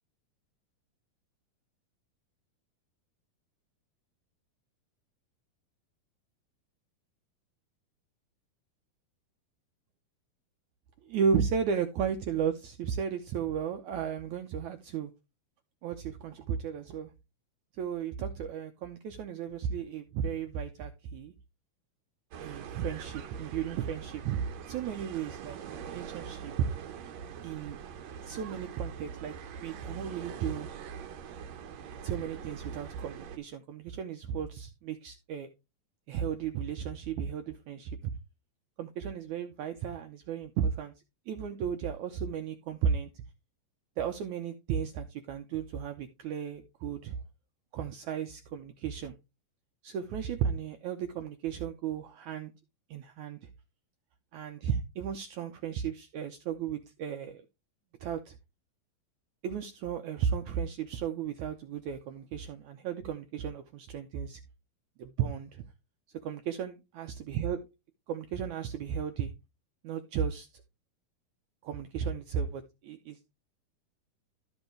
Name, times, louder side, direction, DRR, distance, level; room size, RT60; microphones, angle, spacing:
voice 1, 11.0-15.1 15.8-17.1 17.8-21.3 22.4-26.7 27.4-27.8 28.2-29.3 29.6-30.7 32.0-35.5 36.1-38.1 38.8-40.9 41.3-43.1 44.0-47.2 47.7-49.1 49.8-52.5 52.9-53.5 54.3-57.4 58.0-58.4 59.4-64.4 65.0-65.6 66.2-67.6 68.1-69.3 69.8-70.5 71.6-73.3, right 7 dB, 80° right, 6 dB, 1.7 m, -34 dB
sound 1, 22.3-33.4, right 7 dB, 65° right, 1.8 m, -43 dB
13.0 x 5.8 x 3.2 m, 0.26 s
omnidirectional pair, 4.4 m